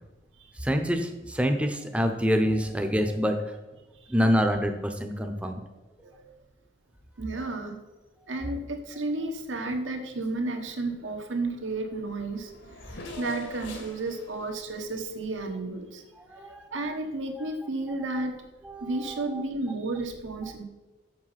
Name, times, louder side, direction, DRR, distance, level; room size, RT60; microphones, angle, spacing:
voice 1, 0.6-3.4 4.1-5.6 16.3-16.6 18.7-19.4, equal, 5° right, 5 dB, 0.7 m, -26 dB
voice 2, 7.2-7.8 8.3-12.8 13.2-16.0 16.4-18.4 18.8-20.6, right 2 dB, 85° right, 4 dB, 1.4 m, -32 dB
Race car auto racing / Accelerating revving vroom, 11.7-11.8 12.0-16.0, left 2 dB, 75° left, 2.0 m, -44 dB
7.4 x 6.9 x 5.8 m, 1.1 s
head